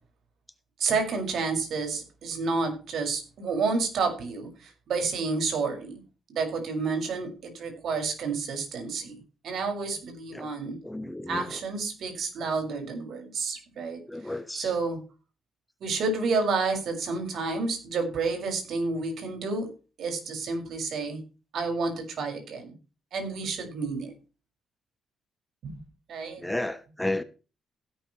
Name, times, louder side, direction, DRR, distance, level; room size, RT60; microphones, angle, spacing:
voice 1, 0.8-6.0 6.3-9.2 9.4-10.8 11.3-14.0 14.5-15.0 15.8-19.7 20.0-21.2 21.5-22.8 23.1-24.1 25.6-25.7 26.1-26.5, right 4 dB, 65° right, 6.0 m, -30 dB
voice 2, 10.8-11.6 14.1-14.7 26.4-27.2, left 1 dB, 10° left, 1.1 m, -33 dB
16.0 x 11.5 x 3.2 m
cardioid pair, 90°, 0 cm